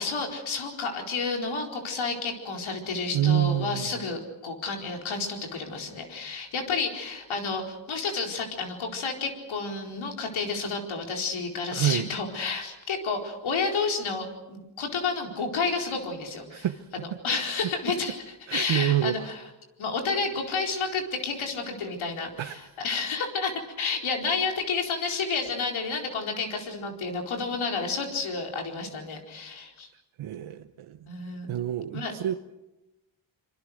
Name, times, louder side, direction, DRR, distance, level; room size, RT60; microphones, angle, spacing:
voice 1, 0.0-16.7 17.2-18.2 18.5-19.4 19.8-29.9 31.1-31.5 31.9-32.1, left 4 dB, 80° left, 2 dB, 4.5 m, -30 dB
voice 2, 3.1-3.9 11.7-12.1 16.5-16.9 17.3-17.5 18.5-19.3 22.4-22.6 30.2-31.0 31.5-32.3, right 11 dB, 80° right, 8 dB, 1.0 m, -27 dB
26.0 x 24.5 x 6.5 m, 0.96 s
cardioid pair, 90°, 47 cm